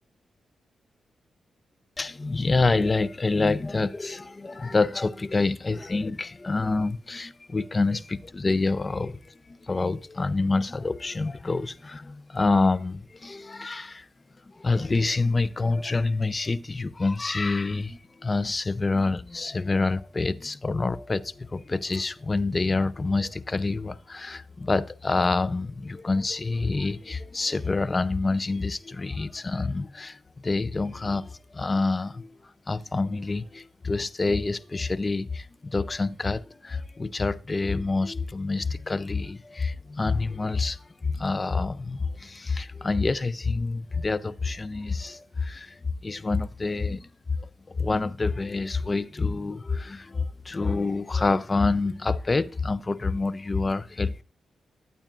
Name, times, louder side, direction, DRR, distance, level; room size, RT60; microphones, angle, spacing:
voice 1, 2.0-14.1 14.5-32.4 32.7-47.1 47.4-54.2, left 3 dB, 35° left, 0.5 m, -27 dB
11.5 x 8.6 x 2.5 m
supercardioid pair, 45°, 0 cm